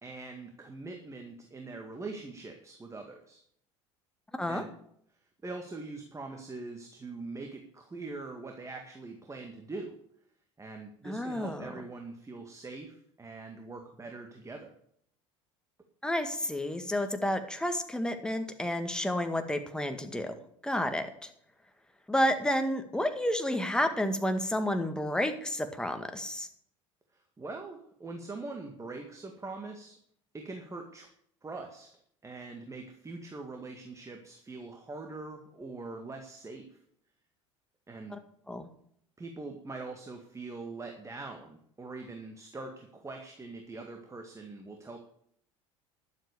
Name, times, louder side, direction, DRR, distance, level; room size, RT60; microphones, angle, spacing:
voice 1, 0.0-3.4 4.5-4.7 5.4-10.0 10.6-14.7 27.1-30.0 30.3-31.1 31.4-31.9 32.2-36.7 37.9-38.2 39.2-45.0, right 3 dB, 20° right, 4 dB, 2.0 m, -43 dB
voice 2, 4.3-4.6 11.0-11.7 16.0-20.3 20.6-21.1 22.1-26.5 38.1-38.2 38.5-38.7, left 1 dB, 5° left, 6 dB, 1.9 m, -30 dB
11.5 x 7.8 x 6.9 m, 0.67 s
hypercardioid pair, 70°, 16 cm